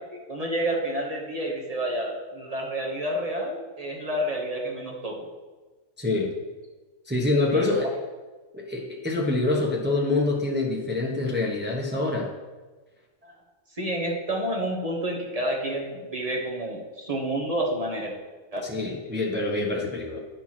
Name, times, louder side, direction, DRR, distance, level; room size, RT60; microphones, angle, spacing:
voice 1, 0.1-5.3 7.5-7.7 13.2-13.3 13.8-18.1 18.5-18.6, right 1 dB, 25° right, 1 dB, 1.3 m, -29 dB
voice 2, 6.0-6.3 7.1-7.9 8.5-12.3 18.6-20.2, left 2 dB, 10° right, -2 dB, 0.9 m, -26 dB
9.0 x 4.6 x 5.9 m, 1.3 s
omnidirectional pair, 1.5 m